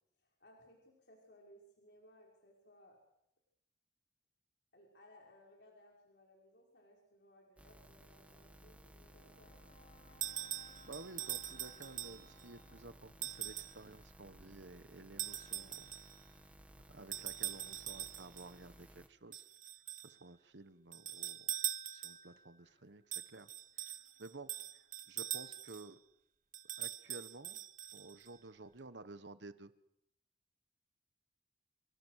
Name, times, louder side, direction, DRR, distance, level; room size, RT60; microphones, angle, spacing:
voice 1, 0.2-3.0 4.7-9.6, left 1 dB, 65° left, -1 dB, 5.5 m, -63 dB
sound 1, 7.6-19.1, right 1 dB, 10° right, 2.1 m, -59 dB
Brass instrument, 9.0-13.4, left 1 dB, 40° left, 4.3 m, -64 dB
sound 2, 10.2-12.4 13.2-13.8 15.2-16.2 17.1-18.5 19.3-20.1 20.9-22.4 23.1-25.9 26.5-28.3, right 12 dB, 45° right, 1.3 m, -42 dB
voice 2, 10.8-15.9 16.9-19.4 20.0-21.5 21.9-23.5 23.8-26.0 26.8-27.6 27.9-29.7, right 2 dB, 80° right, 12 dB, 1.3 m, -53 dB
27.5 x 23.5 x 6.6 m, 0.80 s
head